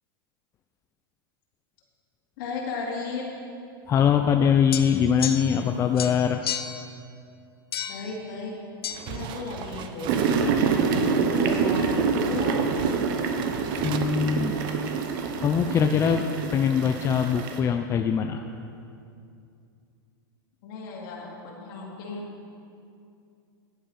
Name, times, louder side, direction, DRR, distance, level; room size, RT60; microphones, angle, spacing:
voice 1, 2.4-3.3 7.9-8.5 9.1-12.6 20.6-22.3, left 4 dB, 60° left, -2 dB, 2.5 m, -35 dB
voice 2, 3.9-6.4 13.8-14.6 15.4-18.4, left 7 dB, 25° left, 6 dB, 0.4 m, -22 dB
sound 1, 4.7-5.7 6.0-6.9 7.7-8.1 8.8-9.0, left 9 dB, 85° left, 0.7 m, -32 dB
sound 2, 8.9-14.0, right 8 dB, 40° right, 0.7 m, -39 dB
sound 3, 10.1-17.6, right 5 dB, 60° right, 1.1 m, -26 dB
10.5 x 10.5 x 4.2 m, 2.5 s
hypercardioid pair, 120°, 12 cm